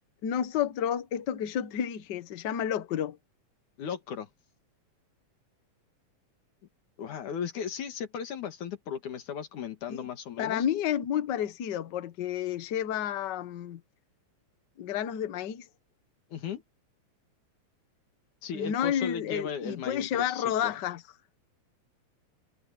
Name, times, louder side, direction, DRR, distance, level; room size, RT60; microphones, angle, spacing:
voice 1, 0.2-3.2 9.9-10.0 10.4-13.8 14.8-15.7 18.5-21.0, left 9 dB, 55° left, 1.2 m, -30 dB
voice 2, 3.8-4.3 7.0-10.6 16.3-16.6 18.4-20.7, left 7 dB, 80° left, 3.4 m, -36 dB
omnidirectional pair, 3.4 m